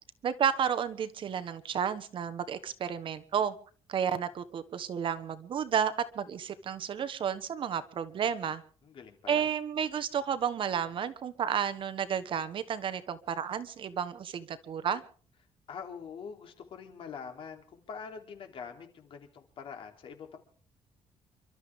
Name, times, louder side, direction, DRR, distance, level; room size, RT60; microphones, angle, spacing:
voice 1, 0.2-3.5 3.9-8.6 9.3-15.0, right 8 dB, 50° right, 12 dB, 1.3 m, -32 dB
voice 2, 8.8-9.5 15.7-20.4, left 6 dB, 55° left, 4 dB, 3.3 m, -44 dB
29.0 x 13.0 x 3.7 m, 0.42 s
cardioid pair, 150°, 11 cm